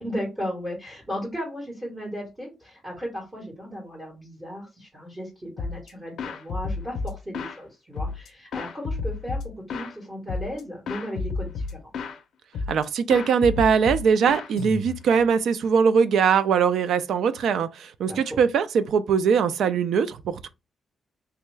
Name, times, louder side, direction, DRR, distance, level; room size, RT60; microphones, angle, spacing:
voice 1, 0.0-11.9 18.1-18.4, equal, 15° right, 1.1 m, -35 dB
sound 1, 5.6-5.9 6.2-7.6 8.0-9.9 10.3-10.6 10.9-12.2 12.5-12.8 13.1-15.2, left 4 dB, 80° left, 0.5 m, -31 dB
voice 2, 12.7-20.5, right 6 dB, 75° right, 0.3 m, -21 dB
3.4 x 2.2 x 3.1 m
wide cardioid pair, 170°, 0 cm